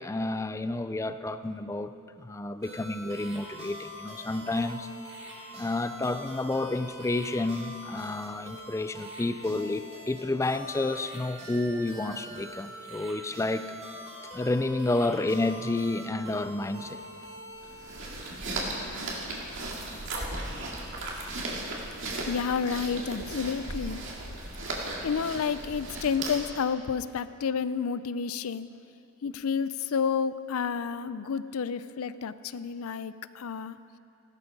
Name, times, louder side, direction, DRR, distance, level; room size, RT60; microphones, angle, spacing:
voice 1, 0.0-4.9 5.5-13.8 14.3-17.0, left 2 dB, 15° left, 12 dB, 0.4 m, -30 dB
sound 1, 2.6-18.8, right 1 dB, 30° right, 3.5 m, -44 dB
sound 2, 17.6-26.6, right 2 dB, 60° right, 2.3 m, -36 dB
voice 2, 22.3-24.0 25.0-28.7 29.2-33.8, left 6 dB, 80° left, 15 dB, 0.5 m, -30 dB
16.0 x 12.5 x 5.3 m, 2.6 s
head